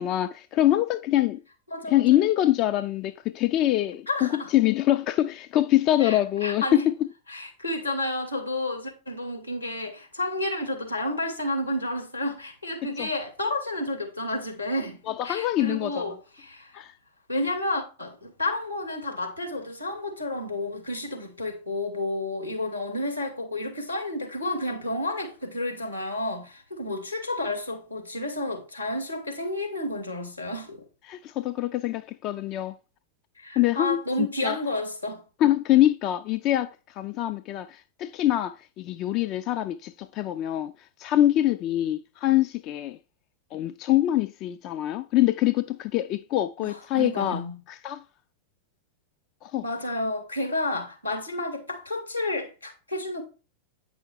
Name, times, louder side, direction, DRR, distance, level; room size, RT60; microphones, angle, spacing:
voice 1, 0.0-1.4 1.9-6.9 12.8-13.1 15.1-16.1 16.7-16.9 31.1-32.8 33.6-34.6 35.4-36.7 36.9-40.7 41.0-43.0 43.5-47.4 47.8-48.0 49.4-49.6, left 13 dB, 40° left, 0.4 m, -24 dB
voice 2, 1.7-2.2 4.1-4.5 6.0-6.9 7.3-16.7 17.3-30.8 33.4-35.2 46.6-47.6 49.6-53.2, left 1 dB, 85° left, 2.6 m, -31 dB
9.3 x 5.6 x 4.4 m
figure-of-eight pair, 90°, 0 cm